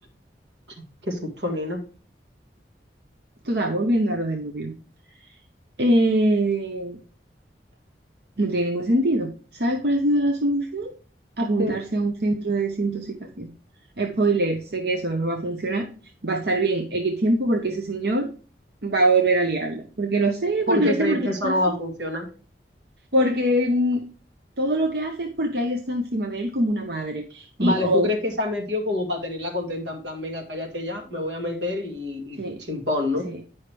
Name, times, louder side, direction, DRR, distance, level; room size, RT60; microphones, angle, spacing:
voice 1, 1.0-1.8 11.6-11.7 20.7-22.3 27.6-32.4 32.7-33.3, left 1 dB, 90° right, 2 dB, 2.2 m, -27 dB
voice 2, 3.4-4.7 5.8-7.0 8.4-10.9 11.4-13.5 14.0-15.9 16.2-18.3 18.8-21.8 23.1-24.0 24.6-28.1 32.4-32.6 33.2-33.4, right 1 dB, 65° right, 4 dB, 0.9 m, -23 dB
9.7 x 5.6 x 3.4 m, 0.38 s
head